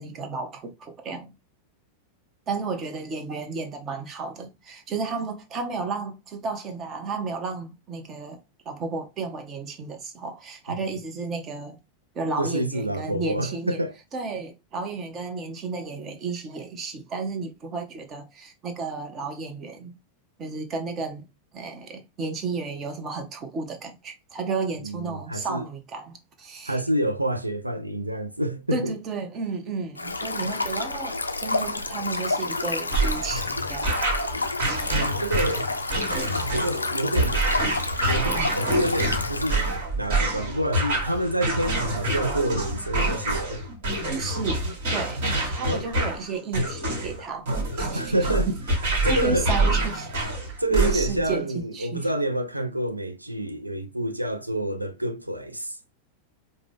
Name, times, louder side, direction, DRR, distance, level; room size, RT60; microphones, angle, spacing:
voice 1, 0.0-1.3 2.5-11.8 12.1-13.8 14.1-20.0 20.4-21.2 21.5-26.8 28.7-33.9 44.2-47.5 47.8-48.1 49.1-50.1 50.7-51.4 51.7-52.1, right 4 dB, 30° right, 0.9 m, -33 dB
voice 2, 12.4-13.9 24.8-25.7 26.7-28.9 34.9-35.7 36.5-37.7 38.1-43.7 45.6-46.0 47.9-48.5 49.0-49.5 50.6-55.8, right 1 dB, 85° right, 0.4 m, -28 dB
Stream, 30.0-39.8, left 3 dB, 80° left, 0.4 m, -29 dB
sound 1, 32.9-51.3, right 2 dB, 55° right, 1.5 m, -27 dB
4.9 x 2.2 x 3.4 m
figure-of-eight pair, 90°, 0 cm